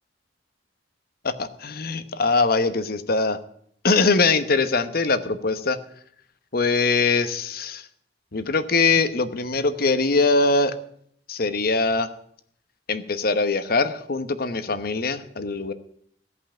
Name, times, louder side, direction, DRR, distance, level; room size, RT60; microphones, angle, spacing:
voice 1, 1.2-3.4 3.8-5.8 6.5-7.8 8.3-10.7 11.3-12.1 12.9-15.7, left 3 dB, 60° left, 11 dB, 1.0 m, -22 dB
16.0 x 5.6 x 9.0 m, 0.64 s
head